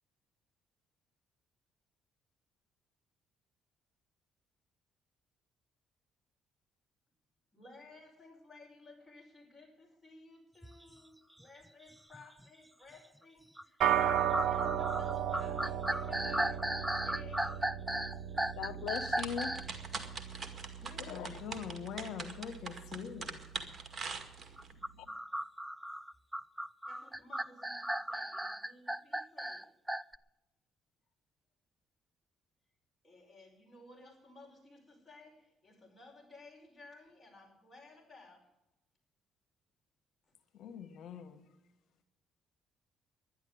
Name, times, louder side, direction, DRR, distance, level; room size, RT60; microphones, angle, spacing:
voice 1, 7.5-17.6 26.9-29.7 33.0-38.5, left 3 dB, 20° left, 5.4 m, -57 dB
sound 1, 10.6-10.8 11.4-11.5 12.1-12.4 13.6-19.7 24.6-30.2, right 1 dB, 5° right, 0.4 m, -36 dB
sound 2, 13.8-23.3, right 10 dB, 70° right, 0.9 m, -36 dB
voice 2, 18.6-19.5 21.0-21.4, left 9 dB, 85° left, 0.9 m, -39 dB
sound 3, 18.9-24.7, right 4 dB, 35° right, 2.0 m, -42 dB
voice 3, 20.8-23.4 40.5-41.5, left 7 dB, 70° left, 1.7 m, -44 dB
11.0 x 10.5 x 8.8 m
cardioid pair, 95°, 0 cm